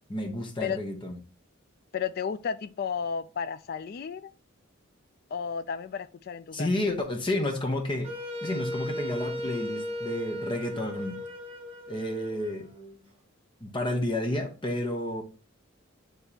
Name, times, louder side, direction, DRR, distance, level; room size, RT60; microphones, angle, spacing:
voice 1, 0.1-1.2 6.5-8.1 8.4-11.2 11.9-12.7 13.6-15.2, left 1 dB, 25° left, 1.0 m, -30 dB
voice 2, 1.9-4.3 5.3-6.7, left 6 dB, 50° left, 0.3 m, -33 dB
Wind instrument woodwind instrument, 8.0-13.0, left 1 dB, 30° right, 1.3 m, -36 dB
9.8 x 3.4 x 2.8 m
head